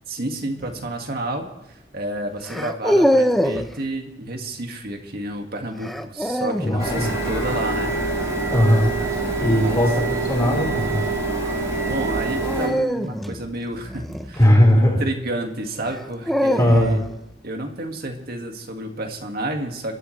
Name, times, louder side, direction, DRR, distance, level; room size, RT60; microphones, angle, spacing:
voice 1, 0.1-7.9 9.6-9.9 11.8-14.5 14.8-17.0 17.4-20.0, right 1 dB, 55° right, 3 dB, 2.0 m, -30 dB
sound 1, 0.6-0.9 2.5-3.7 5.8-6.8 9.2-9.6 12.4-14.8 15.8-17.1, equal, ahead, 0.7 m, -23 dB
voice 2, 6.6-7.1 8.5-8.9 9.4-11.0 14.4-15.0 16.6-17.0, left 1 dB, 20° left, -2 dB, 4.4 m, -18 dB
Printer, 6.8-12.7, right 3 dB, 15° right, 6.9 m, -25 dB
28.5 x 13.0 x 3.3 m, 0.85 s
head